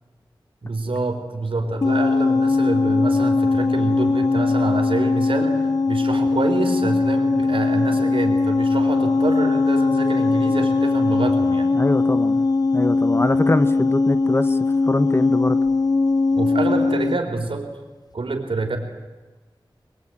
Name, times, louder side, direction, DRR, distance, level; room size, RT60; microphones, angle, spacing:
voice 1, 0.6-11.7 16.3-17.7 18.1-18.8, right 3 dB, 90° right, 4 dB, 3.7 m, -26 dB
sound 1, 1.8-17.2, left 3 dB, 45° left, 0.8 m, -20 dB
voice 2, 11.7-12.4 12.7-14.6 14.8-15.6, left 2 dB, 25° left, 11 dB, 1.2 m, -23 dB
22.5 x 22.5 x 9.1 m, 1.2 s
wide cardioid pair, 75°, 9 cm